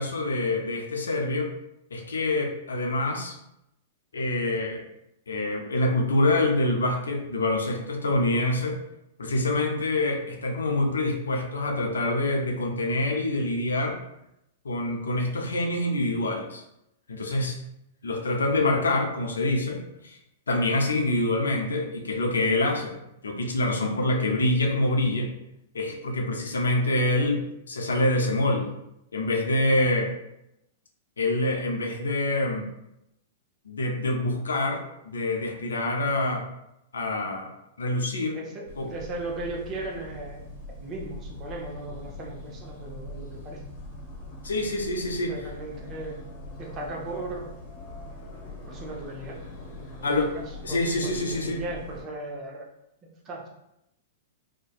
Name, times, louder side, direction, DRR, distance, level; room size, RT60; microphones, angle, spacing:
voice 1, 0.0-1.5 1.9-3.3 4.1-4.8 5.3-8.8 9.2-14.0 14.6-16.6 17.1-17.6 18.0-20.2 20.5-25.3 25.7-28.7 29.1-30.1 31.2-32.7 33.7-36.4 36.9-37.5 37.8-38.4 38.8-38.9 44.4-45.3 50.0-50.3 50.6-51.6, left 2 dB, 85° left, 2 dB, 0.4 m, -26 dB
voice 2, 38.3-40.4 40.8-43.6 45.3-46.3 46.6-47.6 48.7-49.5 49.7-50.4 50.7-52.7 53.2-53.5, right 2 dB, 30° right, -1 dB, 0.6 m, -37 dB
sound 1, 38.7-52.0, left 1 dB, 45° left, 1.0 m, -42 dB
2.5 x 2.1 x 2.3 m, 0.83 s
hypercardioid pair, 110°, 0 cm